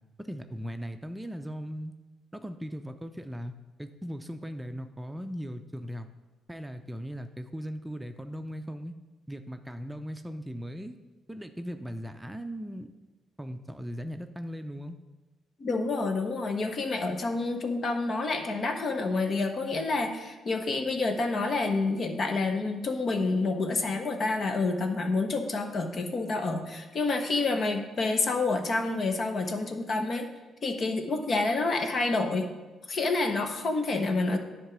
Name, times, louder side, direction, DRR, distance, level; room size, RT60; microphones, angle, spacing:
voice 1, 0.2-1.9 2.3-3.5 3.8-6.1 6.5-8.9 9.3-11.0 11.3-12.9 13.4-15.0, equal, 10° right, 7 dB, 0.6 m, -38 dB
voice 2, 15.6-30.3 30.6-32.5 32.9-34.4, left 3 dB, 50° left, 6 dB, 1.0 m, -28 dB
10.0 x 3.7 x 6.2 m, 1.2 s
hypercardioid pair, 45°, 0 cm